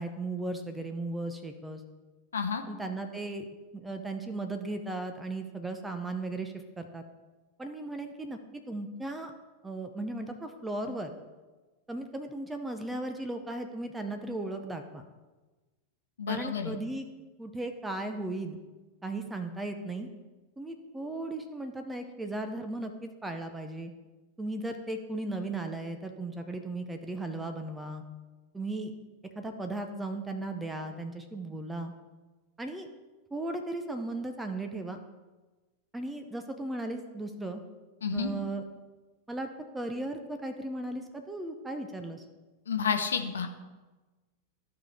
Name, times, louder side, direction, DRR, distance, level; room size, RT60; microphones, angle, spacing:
voice 1, 0.0-1.8 2.7-3.5 3.7-7.0 7.6-9.3 9.6-11.1 11.9-15.0 16.3-17.1 17.4-18.6 19.0-20.1 20.6-23.9 24.4-28.0 28.5-28.9 29.4-31.9 32.6-32.9 33.3-35.0 35.9-37.6 38.1-38.6 39.3-39.5 39.7-42.2, right 2 dB, 10° right, 6 dB, 0.7 m, -36 dB
voice 2, 2.3-2.6 16.2-16.8 38.0-38.3 42.7-43.5, left 6 dB, 70° left, 5 dB, 0.8 m, -30 dB
14.0 x 4.9 x 3.4 m, 1.2 s
figure-of-eight pair, 90°, 0 cm